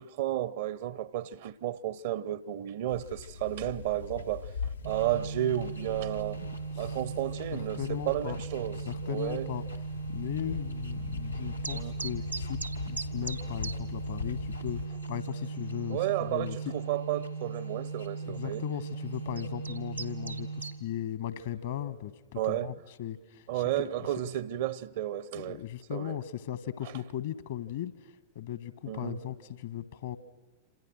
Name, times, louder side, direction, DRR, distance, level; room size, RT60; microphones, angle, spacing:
voice 1, 0.0-4.5 4.8-6.4 6.8-8.8 9.1-9.5 11.7-11.9 15.9-18.6 22.4-22.7 23.5-25.6 25.9-26.1 28.9-29.2, right 13 dB, 55° right, 0.9 m, -32 dB
sound 1, 2.9-14.9, left 5 dB, 75° left, 0.9 m, -41 dB
sound 2, 4.8-21.0, right 5 dB, 90° left, 1.5 m, -39 dB
voice 2, 7.5-8.4 8.9-9.6 10.1-12.6 12.9-16.6 18.2-24.1 25.3-30.2, left 11 dB, 60° left, 1.4 m, -37 dB
sound 3, 11.6-13.8 14.0-14.1 14.7-14.8 15.0-15.5 16.0-16.1 17.5-17.6 18.4-18.6 19.1-20.8, right 4 dB, 85° right, 1.1 m, -39 dB
27.0 x 26.5 x 6.4 m
figure-of-eight pair, 90°, 0 cm